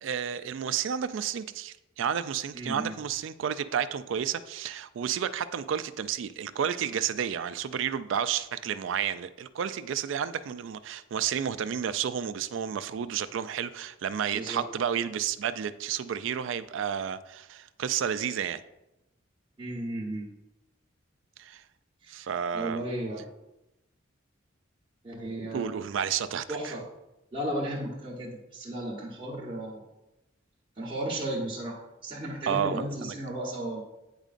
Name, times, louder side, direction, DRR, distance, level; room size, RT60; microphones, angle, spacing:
voice 1, 0.0-18.6 21.4-21.6 22.1-22.8 25.5-26.7 32.5-33.1, right 8 dB, 65° right, 13 dB, 0.3 m, -31 dB
voice 2, 2.5-2.9 14.3-14.6 19.6-20.3 22.0-22.1 22.5-23.2 25.0-25.7 26.5-26.8 27.3-29.8 30.8-33.8, right 1 dB, 25° right, -5 dB, 1.0 m, -34 dB
8.9 x 5.1 x 2.5 m, 0.94 s
head